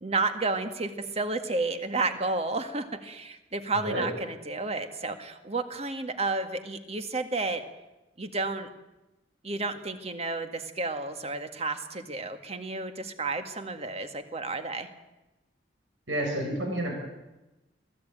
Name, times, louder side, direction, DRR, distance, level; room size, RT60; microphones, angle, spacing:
voice 1, 0.0-7.6 8.2-8.7 9.4-14.9, right 3 dB, 35° right, 7 dB, 1.9 m, -31 dB
voice 2, 3.7-4.1 16.1-17.0, right 1 dB, 85° right, 1 dB, 6.7 m, -30 dB
23.0 x 16.5 x 8.9 m, 1.0 s
head